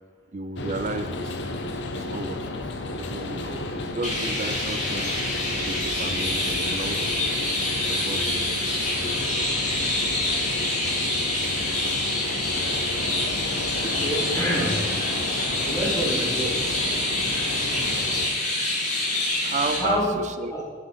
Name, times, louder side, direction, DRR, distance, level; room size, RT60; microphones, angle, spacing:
voice 1, 0.3-1.6 1.9-2.6 3.0-5.1 5.6-7.3 7.8-8.6 9.0-9.9 10.4-10.6 19.4-20.6, right 3 dB, 40° right, 9 dB, 0.5 m, -33 dB
sound 1, 0.6-18.3, left 2 dB, 65° left, 0.7 m, -33 dB
Chirp tweet, 4.0-19.8, left 1 dB, 40° left, 2.4 m, -26 dB
voice 2, 13.8-14.8 15.6-16.6 19.8-20.1 20.5-20.6, equal, 15° left, -4 dB, 1.4 m, -27 dB
7.3 x 6.0 x 5.7 m, 1.5 s
head